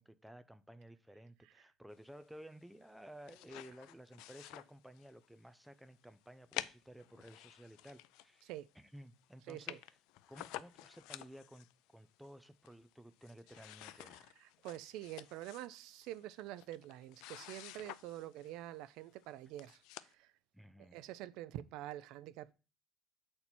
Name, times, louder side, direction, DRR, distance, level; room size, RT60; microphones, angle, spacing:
voice 1, 0.0-8.5 8.8-10.0 10.3-11.7 11.9-14.2 20.5-21.0, equal, ahead, 0.4 m, -55 dB
sound 1, 2.9-5.3 5.6-5.7 6.5-8.6 9.0-9.1 9.2-9.3 9.5-11.7 12.2-12.9 13.2-18.6 19.2-19.3 19.6-20.1, left 15 dB, 90° left, 0.4 m, -50 dB
voice 2, 9.5-9.8 14.0-20.3 20.8-22.5, right 14 dB, 75° right, 0.4 m, -47 dB
8.2 x 4.3 x 4.3 m
cardioid pair, 165°, 0 cm